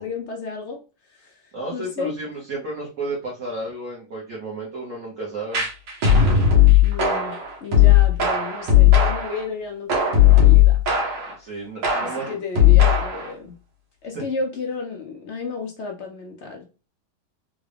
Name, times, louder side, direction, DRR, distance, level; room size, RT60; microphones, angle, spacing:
voice 1, 0.0-2.1 6.8-10.8 12.0-13.5 14.0-16.7, left 4 dB, 80° left, 0.6 m, -33 dB
voice 2, 1.5-5.6 11.4-12.4 14.1-14.2, right 2 dB, 50° right, 1.3 m, -32 dB
sound 1, 5.5-9.4 9.9-11.3 11.8-13.3, left 9 dB, 75° right, 1.8 m, -16 dB
3.8 x 2.3 x 3.3 m
omnidirectional pair, 2.0 m